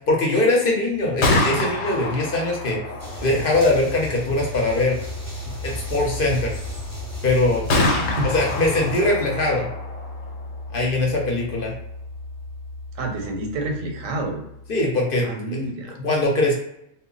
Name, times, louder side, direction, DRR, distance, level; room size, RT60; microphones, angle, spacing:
voice 1, 0.1-2.8 3.2-5.0 5.6-6.5 7.2-7.6 8.2-9.7 10.7-11.7 14.7-15.3 16.0-16.5, left 2 dB, 55° left, -1 dB, 0.7 m, -21 dB
Gunshot gunfire, 1.0-14.8, left 2 dB, 85° left, 1.0 m, -29 dB
sound 1, 3.0-9.1, equal, 15° right, 0.6 m, -35 dB
voice 2, 12.9-14.4 15.2-16.0, right 2 dB, 90° right, 3 dB, 1.0 m, -28 dB
2.1 x 2.0 x 3.7 m, 0.80 s
omnidirectional pair, 1.3 m